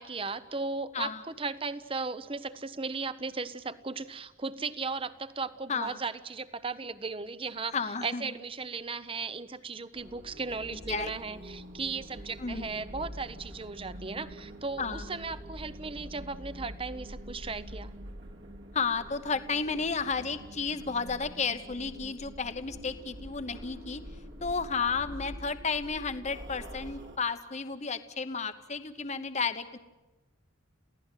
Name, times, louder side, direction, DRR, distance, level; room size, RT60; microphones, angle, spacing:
voice 1, 0.0-7.7 8.0-17.9 24.8-24.9, right 4 dB, 25° right, 14 dB, 0.8 m, -36 dB
voice 2, 7.7-8.2 10.9-11.1 12.4-12.6 14.8-15.0 18.7-24.0 24.4-29.8, left 5 dB, 35° left, 10 dB, 1.0 m, -32 dB
sound 1, 9.9-27.2, equal, 55° right, 2.2 m, -45 dB
28.5 x 16.5 x 9.1 m, 1.1 s
head